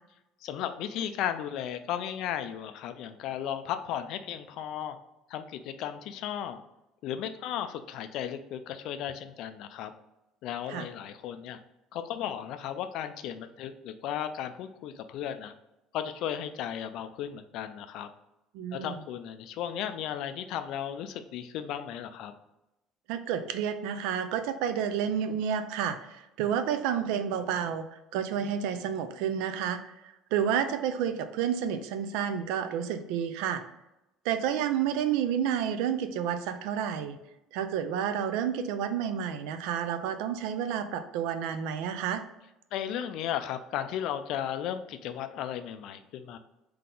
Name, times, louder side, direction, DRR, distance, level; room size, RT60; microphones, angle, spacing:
voice 1, 0.4-5.0 5.3-6.6 7.0-9.9 10.4-11.6 11.9-15.5 15.9-18.1 18.7-22.3 42.7-46.4, left 10 dB, 50° left, 9 dB, 0.3 m, -35 dB
voice 2, 18.5-19.0 23.1-27.8 28.1-29.9 30.3-33.6 34.2-37.2 37.5-42.2, right 8 dB, 80° right, 9 dB, 0.4 m, -30 dB
3.8 x 2.8 x 3.7 m, 0.93 s
cardioid pair, 180°, 0 cm